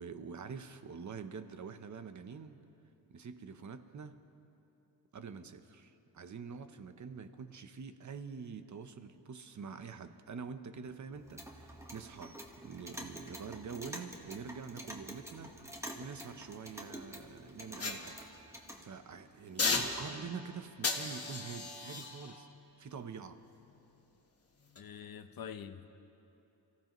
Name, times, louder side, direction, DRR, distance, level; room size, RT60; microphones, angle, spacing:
voice 1, 0.0-2.6 3.1-4.2 5.1-12.4 12.6-18.2 18.8-22.5 22.8-23.4, right 6 dB, 50° right, 10 dB, 0.8 m, -46 dB
Clock, 11.1-18.9, equal, 5° right, 1.3 m, -48 dB
sound 1, 17.8-18.8 19.6-20.4 20.8-24.0 24.6-24.8, left 3 dB, 40° left, 1.4 m, -37 dB
voice 2, 24.8-26.0, left 8 dB, 65° left, 10 dB, 0.8 m, -46 dB
29.0 x 15.0 x 3.1 m, 2.9 s
wide cardioid pair, 125°, 38 cm